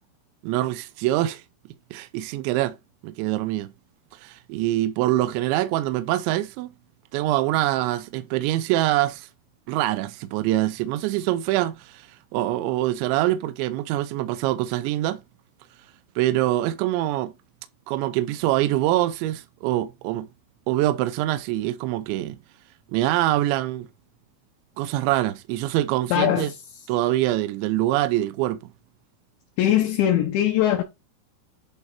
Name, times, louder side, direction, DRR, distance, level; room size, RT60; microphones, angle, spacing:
voice 1, 0.4-1.4 1.9-2.8 3.0-3.7 4.1-6.7 7.1-9.3 9.7-12.1 12.3-15.2 16.2-17.3 17.9-20.3 20.7-22.4 22.9-23.9 24.8-26.5 26.9-28.6, right 15 dB, 80° right, 2.9 m, -24 dB
voice 2, 26.1-26.5 29.6-30.8, left 11 dB, 75° left, 3.1 m, -21 dB
11.0 x 4.4 x 4.2 m
omnidirectional pair, 5.6 m